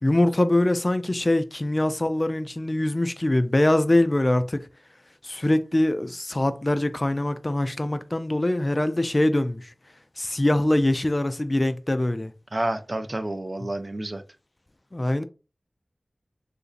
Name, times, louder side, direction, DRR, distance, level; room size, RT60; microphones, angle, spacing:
voice 1, 0.0-4.6 5.2-9.7 10.2-12.3 14.9-15.2, left 1 dB, 30° left, 0.4 m, -23 dB
voice 2, 12.5-14.2, right 1 dB, 40° right, 0.5 m, -29 dB
3.8 x 2.5 x 2.4 m
wide cardioid pair, 55°, 0 cm